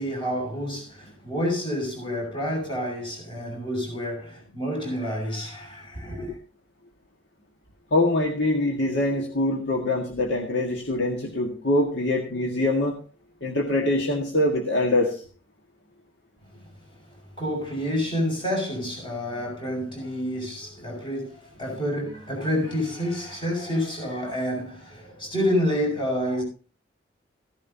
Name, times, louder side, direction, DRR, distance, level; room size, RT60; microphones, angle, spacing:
voice 1, 0.0-6.4 16.5-16.6 17.4-26.4, equal, 25° left, 6.0 m, -28 dB
voice 2, 7.9-13.0 13.4-15.2, left 1 dB, 70° left, 1.8 m, -24 dB
15.5 x 11.0 x 2.8 m
head